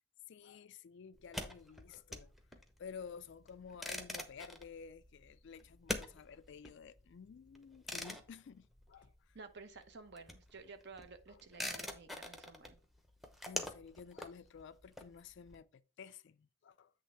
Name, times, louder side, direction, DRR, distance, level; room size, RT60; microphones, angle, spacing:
voice 1, 0.3-2.3 2.8-9.1 11.3-11.4 13.4-16.9, left 6 dB, 55° left, 0.3 m, -52 dB
sound 1, 1.1-9.5 9.8-15.5, left 1 dB, ahead, 0.7 m, -45 dB
voice 2, 9.3-12.8, right 4 dB, 50° right, 0.9 m, -53 dB
8.2 x 3.4 x 5.6 m
head